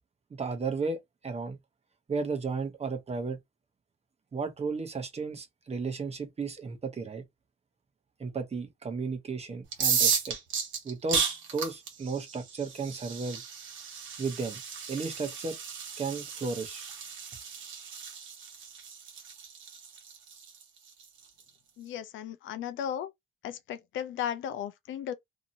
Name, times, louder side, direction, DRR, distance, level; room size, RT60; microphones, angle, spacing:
voice 1, 0.3-1.6 2.1-3.4 4.3-7.2 8.2-10.4 10.8-11.2 11.5-13.4 14.2-14.6 14.9-15.6 16.0-16.9, right 4 dB, 30° right, 0.9 m, -34 dB
sound 1, 9.7-21.4, right 6 dB, 75° right, 1.0 m, -34 dB
voice 2, 21.8-23.1 23.4-25.1, left 9 dB, 75° left, 0.5 m, -35 dB
2.8 x 2.6 x 2.7 m
cardioid pair, 90°, 20 cm